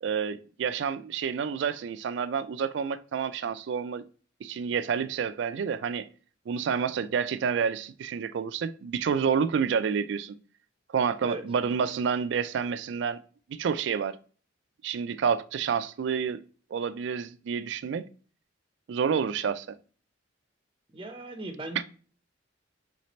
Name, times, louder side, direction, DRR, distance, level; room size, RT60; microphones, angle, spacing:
voice 1, 0.0-4.0 4.4-6.1 6.5-10.3 10.9-13.2 13.5-14.2 14.8-16.4 16.7-18.1 18.9-19.8 21.8-21.9, right 6 dB, 60° right, 0.3 m, -29 dB
voice 2, 20.9-21.8, right 2 dB, 25° right, 0.6 m, -37 dB
3.2 x 3.1 x 4.1 m
head